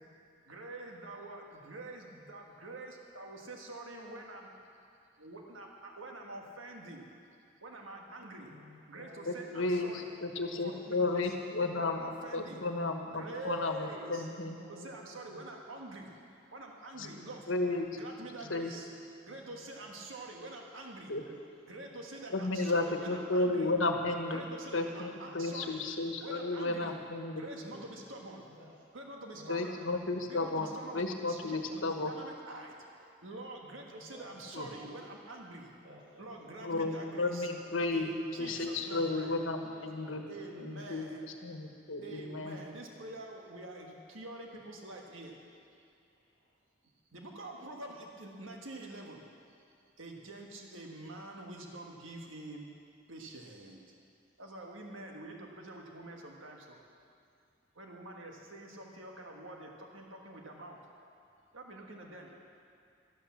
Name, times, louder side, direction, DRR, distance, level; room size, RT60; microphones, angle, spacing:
voice 1, 0.5-4.5 5.2-7.1 7.6-8.5 8.9-10.0 10.6-11.2 11.7-12.6 13.1-14.3 14.7-16.1 16.5-17.4 17.9-18.9 19.3-21.1 21.7-23.7 24.3-25.8 26.2-26.9 27.3-28.5 28.9-29.7 30.2-35.7 36.2-37.5 37.9-39.4 40.3-41.2 42.0-45.4 47.1-49.2 50.0-52.7 53.1-53.8 54.4-56.8 57.7-60.8 61.5-62.3, right 2 dB, 85° right, 1 dB, 1.6 m, -46 dB
voice 2, 8.4-9.4 10.5-12.9 14.5-15.4 16.9-17.4 18.3-18.6 19.2-20.0 21.2-21.4 21.7-22.8 24.2-26.0 27.4-27.9 28.5-28.7 29.3-30.6 31.6-32.1 33.9-35.0 35.8-37.1 37.5-37.7 38.3-39.4 39.7-41.0 42.2-42.8 46.1-46.5, left 1 dB, 60° right, -4 dB, 4.4 m, -56 dB
voice 3, 9.3-12.1 12.3-14.6 17.0-17.1 17.5-17.9 18.5-18.7 21.1-21.2 22.3-24.4 24.7-27.4 29.5-32.1 34.5-34.7 36.6-38.1 38.4-40.2 40.6-41.1 41.4-42.6, left 2 dB, 80° left, 4 dB, 1.3 m, -33 dB
12.5 x 12.0 x 7.3 m, 2.4 s
head